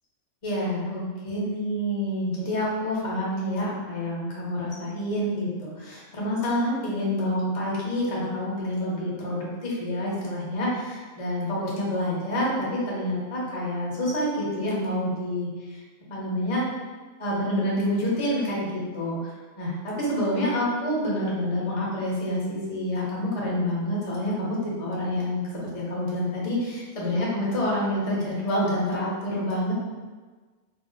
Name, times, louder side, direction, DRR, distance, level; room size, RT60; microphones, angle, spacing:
voice 1, 0.4-15.8 16.1-16.6 17.2-19.3 19.6-29.7, left 1 dB, 40° left, -5 dB, 0.5 m, -28 dB
2.6 x 2.0 x 3.7 m, 1.4 s
omnidirectional pair, 1.5 m